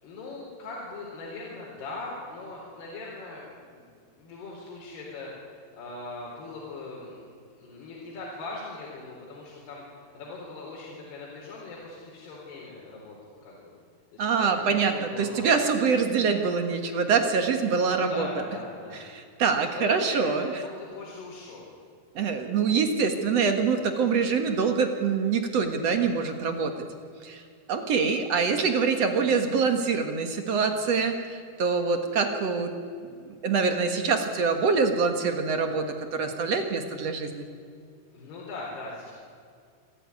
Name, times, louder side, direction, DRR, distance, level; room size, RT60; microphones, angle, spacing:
voice 1, 0.0-7.2 7.6-13.7 14.1-15.6 17.8-19.0 19.3-19.4 19.7-21.7 22.2-22.3 38.1-39.1, left 3 dB, 80° left, -4 dB, 6.0 m, -40 dB
voice 2, 14.2-18.3 19.1-20.5 22.2-26.7 27.2-27.4 27.7-32.7 33.3-37.4, right 5 dB, 55° right, 6 dB, 2.1 m, -25 dB
26.5 x 15.0 x 9.6 m, 2.2 s
omnidirectional pair, 4.6 m